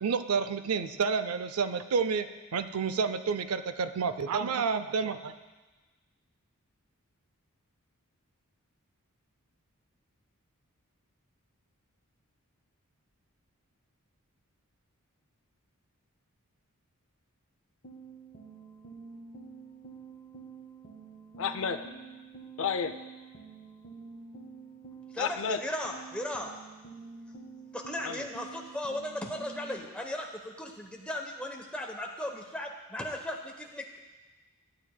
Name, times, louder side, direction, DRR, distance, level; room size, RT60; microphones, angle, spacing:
voice 1, 0.0-2.3 2.5-5.3, right 5 dB, 75° right, 11 dB, 0.5 m, -29 dB
sound 1, 17.8-25.5 25.8-29.8, right 5 dB, 45° left, 1.2 m, -48 dB
voice 2, 21.4-21.8 22.6-22.9 25.2-25.6 28.0-28.2, left 6 dB, 60° left, 9 dB, 0.5 m, -31 dB
voice 3, 25.1-26.5 27.7-34.0, left 1 dB, 5° left, 1 dB, 0.8 m, -37 dB
14.5 x 8.9 x 2.2 m, 1.2 s
head